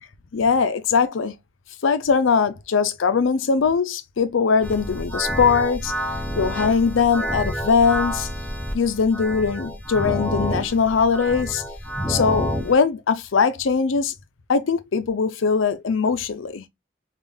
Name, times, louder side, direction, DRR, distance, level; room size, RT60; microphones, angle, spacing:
voice 1, 0.3-1.3 1.8-5.9 6.4-8.3 8.7-11.6 12.1-14.1 14.5-16.7, left 5 dB, 80° left, 0.5 m, -21 dB
sound 1, 4.6-12.7, equal, 5° left, 0.5 m, -28 dB
3.5 x 2.4 x 3.3 m
head